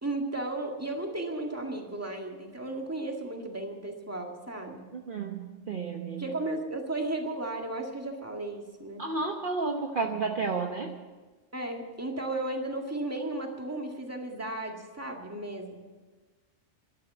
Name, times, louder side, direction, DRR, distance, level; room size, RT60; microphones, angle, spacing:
voice 1, 0.0-4.9 6.2-9.0 11.5-15.8, right 2 dB, 10° right, 1 dB, 1.9 m, -34 dB
voice 2, 4.9-6.3 9.0-11.0, right 4 dB, 45° right, 2 dB, 1.1 m, -32 dB
12.5 x 12.0 x 8.2 m, 1.3 s
omnidirectional pair, 1.3 m